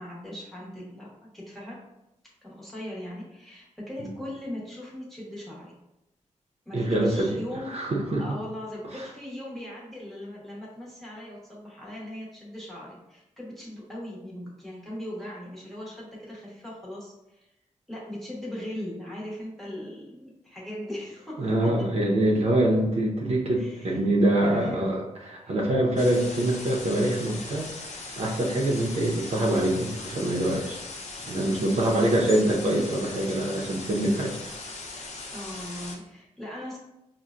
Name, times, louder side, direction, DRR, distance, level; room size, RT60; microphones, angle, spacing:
voice 1, 0.0-1.8 2.4-5.7 6.7-7.8 8.2-17.5 17.9-21.9 23.5-24.0 24.4-25.0 25.4-25.6 31.7-32.1 35.3-36.8, left 1 dB, ahead, -6 dB, 0.9 m, -39 dB
voice 2, 6.7-7.4 7.7-8.2 8.9-9.0 21.4-27.7 28.2-30.8 31.3-34.4, right 1 dB, 55° right, -3 dB, 0.6 m, -24 dB
sound 1, 26.0-36.0, left 3 dB, 60° left, 0.6 m, -39 dB
5.3 x 2.1 x 2.4 m, 0.92 s
wide cardioid pair, 165°, 13 cm